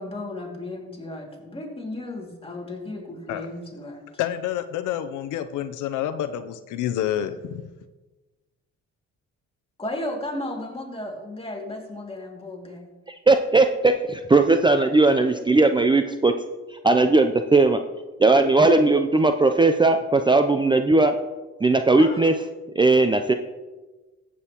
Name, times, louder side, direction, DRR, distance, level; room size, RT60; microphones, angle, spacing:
voice 1, 0.0-4.1 9.8-12.9 18.4-18.5 22.0-22.3, left 2 dB, 20° left, 0 dB, 2.3 m, -34 dB
voice 2, 4.2-7.7, left 11 dB, 85° left, 10 dB, 0.6 m, -28 dB
voice 3, 13.3-16.3 16.8-17.8 18.2-21.1 21.6-22.3 22.8-23.3, right 3 dB, 15° right, 7 dB, 0.5 m, -18 dB
14.5 x 8.5 x 2.9 m, 1.2 s
cardioid pair, 90°, 30 cm